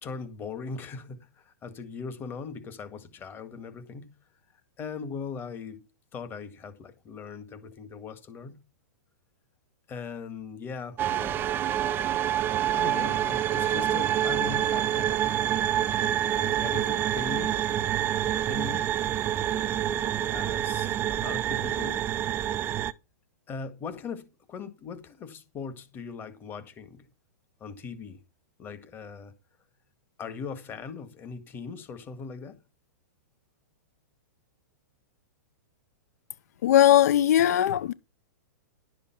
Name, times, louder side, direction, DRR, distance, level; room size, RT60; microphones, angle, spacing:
voice 1, 0.0-4.1 4.8-5.8 6.1-8.6 9.9-11.5 12.7-15.2 16.3-17.6 18.5-18.9 20.3-22.1 23.5-27.1 27.6-28.2 28.6-29.3 30.2-32.6, left 5 dB, 20° left, 1.9 m, -39 dB
sound 1, 11.0-22.9, right 11 dB, 25° right, 0.5 m, -27 dB
voice 2, 36.6-37.9, left 11 dB, 65° left, 0.6 m, -19 dB
11.5 x 7.0 x 5.8 m
hypercardioid pair, 140°, 9 cm